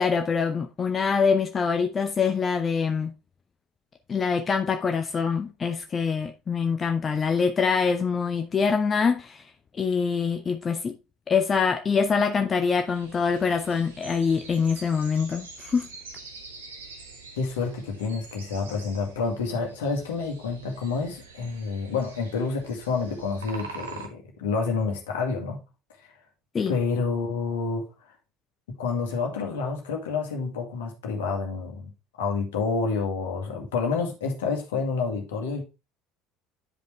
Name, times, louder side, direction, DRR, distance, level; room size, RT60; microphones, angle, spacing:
voice 1, 0.0-3.1 4.1-9.4 9.7-11.0 11.3-15.9 26.5-26.7, left 5 dB, 30° left, 0.7 m, -24 dB
sound 1, 12.9-24.1, right 4 dB, 75° right, 1.3 m, -45 dB
voice 2, 17.4-25.6 26.7-27.8 28.8-31.9 32.2-35.6, left 4 dB, 65° left, 2.0 m, -28 dB
9.8 x 5.2 x 3.3 m
figure-of-eight pair, 60°, 0 cm